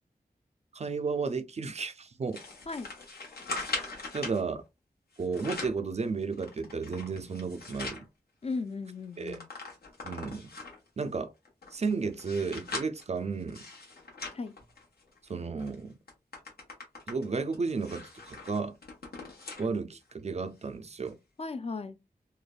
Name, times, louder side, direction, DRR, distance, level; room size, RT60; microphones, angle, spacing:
voice 1, 0.7-2.4 4.1-4.6 5.2-8.1 9.2-9.4 10.0-10.5 11.0-11.3 11.7-13.6 15.3-15.9 17.1-18.7 19.6-21.2, right 4 dB, 45° right, 0.4 m, -33 dB
sound 1, 2.3-4.4 5.1-5.8 6.3-8.0 8.5-8.6 8.8-10.9 11.4-15.2 15.6-15.8 16.1-19.7 20.1-20.2 21.1-21.2, left 3 dB, 80° left, 1.0 m, -41 dB
voice 2, 8.4-9.5 14.3-14.5 21.4-22.0, left 4 dB, 40° left, 0.4 m, -36 dB
3.2 x 2.1 x 2.3 m
wide cardioid pair, 90°, 16 cm